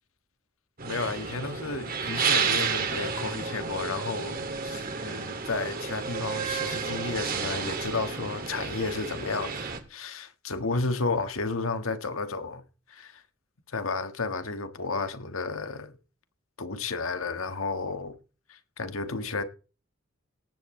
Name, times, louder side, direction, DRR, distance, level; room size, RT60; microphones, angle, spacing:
voice 1, 0.8-12.6 12.9-13.2 13.7-15.9 16.6-18.2 18.5-19.4, left 3 dB, 80° left, 1.5 m, -32 dB
sound 1, 0.8-9.8, right 5 dB, 45° right, 2.3 m, -31 dB
18.5 x 15.0 x 3.2 m
head